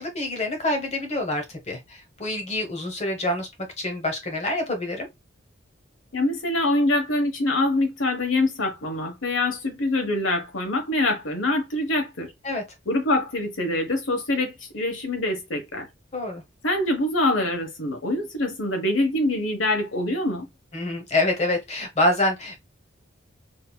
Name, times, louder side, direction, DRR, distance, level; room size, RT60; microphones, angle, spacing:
voice 1, 0.0-3.5 3.8-5.1 12.4-12.6 16.1-16.4 20.7-22.6, left 1 dB, 30° left, 1.1 m, -26 dB
voice 2, 6.1-12.3 12.9-15.9 16.6-20.5, left 2 dB, 75° left, 1.2 m, -24 dB
4.2 x 2.7 x 2.3 m
head